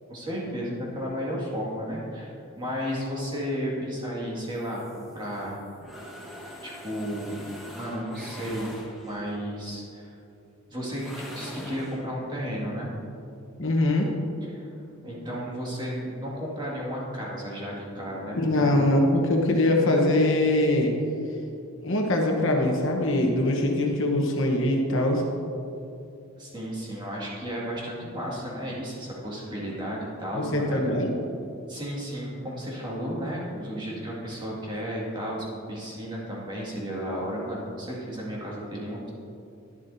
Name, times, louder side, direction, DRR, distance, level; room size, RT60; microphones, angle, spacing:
voice 1, 0.1-5.6 6.6-7.5 7.7-10.1 10.7-12.9 14.4-14.7 15.0-18.7 26.4-30.9 31.7-39.1, equal, 20° right, -5 dB, 2.1 m, -33 dB
sound 1, 4.5-9.3 10.9-12.1, equal, ahead, 1.4 m, -43 dB
voice 2, 13.6-14.1 18.3-21.0 21.8-25.2 30.3-31.1, left 1 dB, 60° left, 1 dB, 1.2 m, -23 dB
11.5 x 11.0 x 2.7 m, 2.7 s
head